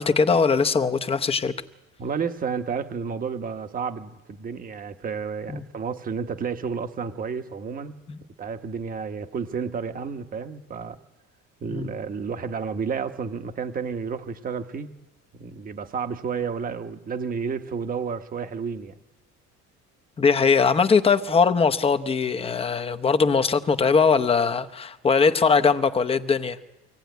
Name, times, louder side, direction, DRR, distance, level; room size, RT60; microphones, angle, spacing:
voice 1, 0.0-1.5 5.5-5.6 8.1-8.2 11.7-11.9 20.2-26.6, left 5 dB, 20° left, 8 dB, 0.8 m, -21 dB
voice 2, 2.0-7.9 8.4-11.0 11.6-14.9 15.3-19.0, right 6 dB, 30° right, 8 dB, 1.0 m, -31 dB
24.0 x 17.5 x 9.3 m, 1.0 s
cardioid pair, 160°, 30 cm